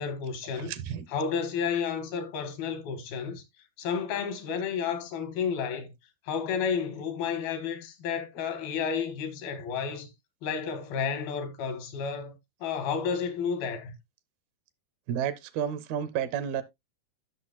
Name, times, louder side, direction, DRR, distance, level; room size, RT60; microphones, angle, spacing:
voice 1, 0.0-0.7 1.1-3.4 3.8-5.9 6.3-10.1 10.4-13.9, left 6 dB, 85° left, 3.3 m, -31 dB
voice 2, 0.6-1.1 15.1-16.6, right 9 dB, 80° right, 2.7 m, -31 dB
13.5 x 6.3 x 2.3 m
omnidirectional pair, 4.3 m